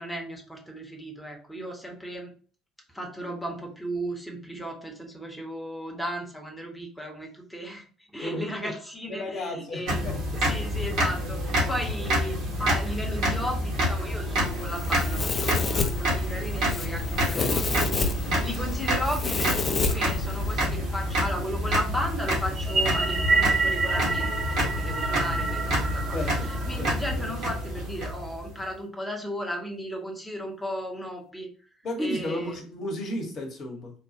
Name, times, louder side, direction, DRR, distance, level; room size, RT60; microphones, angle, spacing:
voice 1, 0.0-2.3 2.9-7.8 8.1-10.0 10.4-31.5 32.0-32.6, equal, 5° left, 0 dB, 1.0 m, -35 dB
voice 2, 8.2-8.7 9.1-10.2 17.2-17.6 26.1-26.9 31.8-33.9, left 1 dB, 45° left, 2 dB, 1.0 m, -33 dB
sound 1, 9.9-28.6, equal, 60° right, 1.3 m, -28 dB
Domestic sounds home sounds, 14.4-20.6, left 3 dB, 30° left, 0.5 m, -30 dB
sound 2, 22.6-27.1, right 4 dB, 30° right, 0.4 m, -28 dB
3.6 x 2.3 x 2.8 m, 0.41 s
figure-of-eight pair, 55°, 0 cm